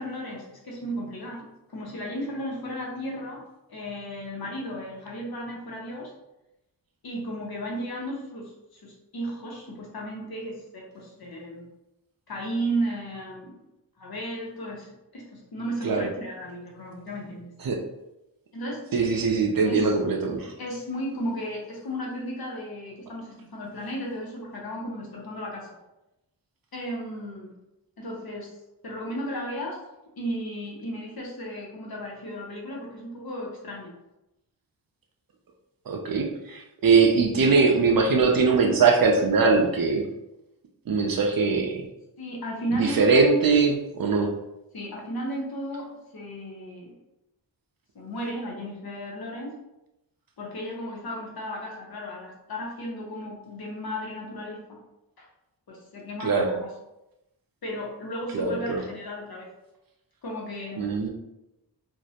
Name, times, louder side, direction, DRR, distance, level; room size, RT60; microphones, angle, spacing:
voice 1, 0.0-3.4 3.7-6.1 7.0-11.7 12.3-13.6 14.0-17.5 18.5-18.8 19.7-19.9 20.6-25.7 26.7-27.5 28.0-28.5 28.8-29.8 30.2-33.9 42.2-43.6 44.7-46.9 47.9-49.5 50.4-54.8 55.2-55.3 55.7-56.7 57.6-59.5 60.2-61.0, equal, 55° left, -2 dB, 0.8 m, -34 dB
voice 2, 18.9-20.5 35.9-40.1 40.9-41.8 42.7-44.3 56.2-56.5 58.3-58.8 60.8-61.1, right 4 dB, 50° right, 2 dB, 0.5 m, -21 dB
2.5 x 2.0 x 2.7 m, 0.92 s
cardioid pair, 60°, 45 cm